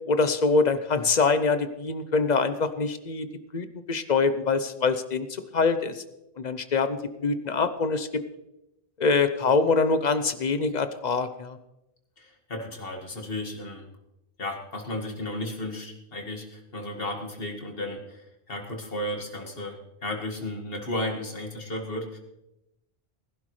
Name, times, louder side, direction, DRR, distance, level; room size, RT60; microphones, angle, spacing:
voice 1, 0.1-3.3 3.5-5.3 5.5-6.0 6.4-8.1 9.0-11.6, left 4 dB, 45° left, 10 dB, 0.9 m, -24 dB
voice 2, 12.2-13.9 14.4-22.2, left 1 dB, 60° left, 2 dB, 2.2 m, -34 dB
20.0 x 11.5 x 3.3 m, 0.88 s
omnidirectional pair, 1.1 m